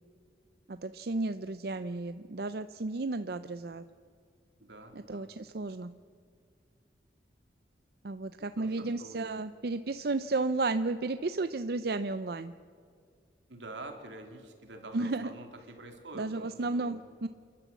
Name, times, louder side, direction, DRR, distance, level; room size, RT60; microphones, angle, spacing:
voice 1, 0.7-3.8 4.9-5.9 8.0-12.5 14.9-15.3 16.2-17.3, right 3 dB, 55° right, 11 dB, 0.5 m, -33 dB
voice 2, 4.6-5.3 8.4-9.2 13.5-17.0, right 2 dB, 85° right, 4 dB, 3.1 m, -47 dB
29.0 x 12.0 x 8.2 m, 2.2 s
head